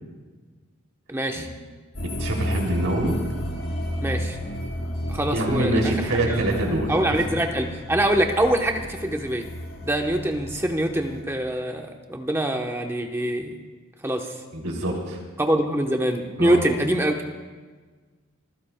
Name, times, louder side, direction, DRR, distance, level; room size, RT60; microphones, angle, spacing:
voice 1, 1.1-1.5 4.0-4.4 5.1-9.5 9.8-13.5 14.0-14.3 15.4-17.1, right 1 dB, 10° right, 3 dB, 1.0 m, -24 dB
sound 1, 1.9-11.2, equal, 85° left, 5.8 m, -32 dB
voice 2, 2.2-3.2 5.3-6.9 14.5-15.2 16.4-16.6, right 1 dB, 80° right, 0 dB, 3.0 m, -25 dB
29.0 x 15.0 x 2.3 m, 1.4 s
head